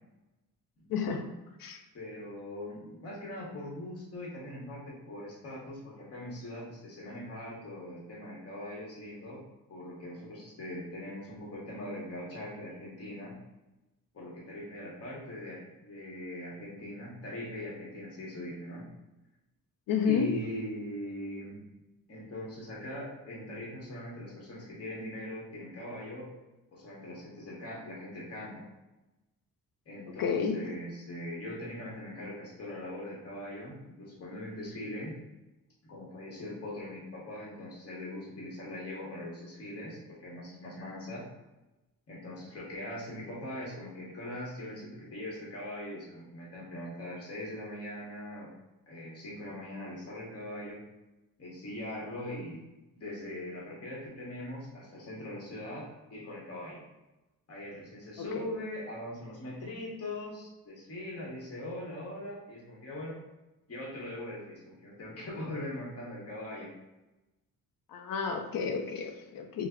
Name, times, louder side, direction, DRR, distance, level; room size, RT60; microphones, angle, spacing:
voice 1, 0.9-1.3 1.6-1.8 19.9-20.3 30.2-30.6 58.2-58.5 67.9-69.7, left 6 dB, 65° left, 5 dB, 0.5 m, -31 dB
voice 2, 1.9-9.4 9.7-13.4 14.1-18.9 20.0-21.6 22.1-26.3 26.7-28.5 29.9-35.1 35.9-41.3 42.1-48.5 48.9-50.8 51.4-52.6 53.0-56.8 57.5-63.2 63.7-66.7, left 1 dB, 40° left, -4 dB, 1.0 m, -41 dB
3.2 x 2.1 x 3.6 m, 1.0 s
wide cardioid pair, 175°, 37 cm